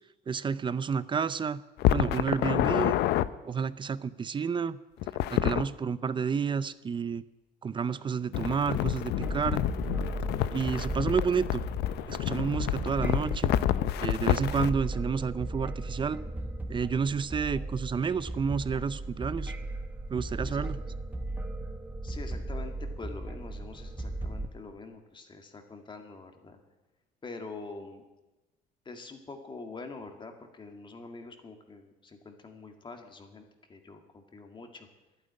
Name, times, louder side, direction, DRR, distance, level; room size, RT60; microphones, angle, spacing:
voice 1, 0.3-1.6 1.9-2.9 3.4-4.8 5.3-7.2 7.6-9.6 10.5-11.6 12.1-13.5 14.0-16.2 16.7-19.5 20.1-20.8, right 6 dB, 30° right, 16 dB, 0.6 m, -30 dB
sound 1, 1.8-3.3 5.0-5.6 8.3-14.7, left 13 dB, 80° left, 0.6 m, -28 dB
sound 2, 9.2-24.5, right 2 dB, 10° right, 1.4 m, -36 dB
voice 2, 22.0-26.6 27.2-28.0 28.9-34.9, left 3 dB, 30° left, 5 dB, 2.0 m, -45 dB
11.5 x 9.1 x 9.7 m, 1.1 s
cardioid pair, 110°, 17 cm